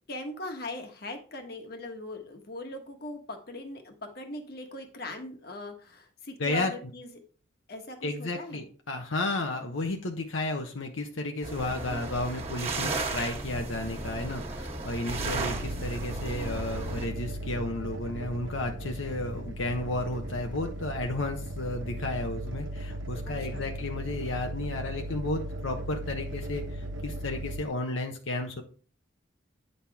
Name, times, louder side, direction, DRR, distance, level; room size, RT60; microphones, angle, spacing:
voice 1, 0.1-7.2 7.7-8.6 15.2-15.6 23.2-23.7, left 2 dB, 50° left, 4 dB, 1.4 m, -40 dB
voice 2, 6.4-6.7 8.0-26.6 27.0-28.6, left 2 dB, 85° left, 4 dB, 1.1 m, -33 dB
sound 1, 11.4-17.1, right 3 dB, 30° right, 1.6 m, -35 dB
sound 2, 15.1-27.6, right 1 dB, 75° right, 1.1 m, -37 dB
9.2 x 6.6 x 3.5 m, 0.41 s
head